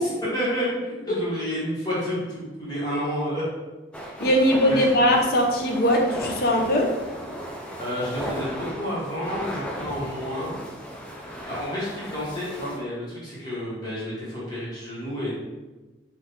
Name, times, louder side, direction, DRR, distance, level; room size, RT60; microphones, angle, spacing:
voice 1, 0.0-3.4 4.7-4.8 7.7-10.6 11.5-15.3, equal, 20° left, -8 dB, 1.3 m, -30 dB
sound 1, 3.9-12.8, equal, 5° left, 0.4 m, -36 dB
voice 2, 4.2-6.9, equal, 50° left, 1 dB, 0.6 m, -20 dB
4.2 x 2.6 x 3.5 m, 1.1 s
head